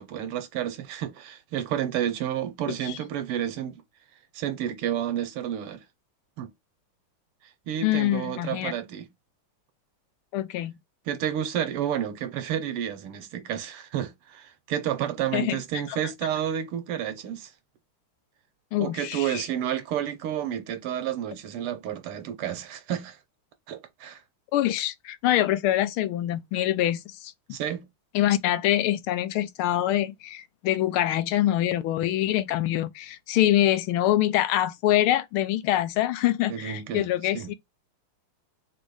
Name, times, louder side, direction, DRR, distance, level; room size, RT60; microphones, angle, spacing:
voice 1, 0.0-3.8 4.4-5.8 6.4-6.5 7.7-9.1 11.1-17.5 18.8-23.2 23.7-24.2 27.5-27.9 36.5-37.5, right 10 dB, 85° right, 1.8 m, -30 dB
voice 2, 2.7-3.0 7.8-8.7 10.3-10.8 15.3-15.6 15.9-16.0 18.7-19.4 24.5-27.3 28.1-37.5, left 13 dB, 80° left, 1.5 m, -25 dB
4.3 x 2.6 x 4.7 m
omnidirectional pair, 2.4 m